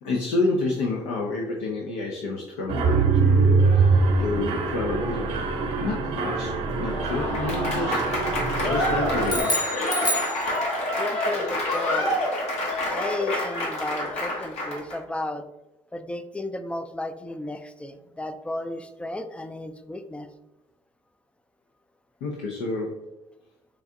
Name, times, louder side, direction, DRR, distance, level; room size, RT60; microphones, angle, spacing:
voice 1, 0.0-5.5 5.8-9.5 22.2-23.0, left 3 dB, 90° left, -2 dB, 0.5 m, -29 dB
Mechanisms, 2.7-9.4, right 4 dB, 60° right, 0.6 m, -23 dB
Applause / Crowd, 6.8-15.0, left 1 dB, 70° left, 1.0 m, -27 dB
sound 1, 9.2-11.0, equal, 40° left, 0.9 m, -28 dB
voice 2, 11.0-12.1 12.9-15.5 15.9-20.3, left 2 dB, 10° left, 9 dB, 0.3 m, -33 dB
4.6 x 2.4 x 2.6 m, 0.98 s
supercardioid pair, 85°, 11 cm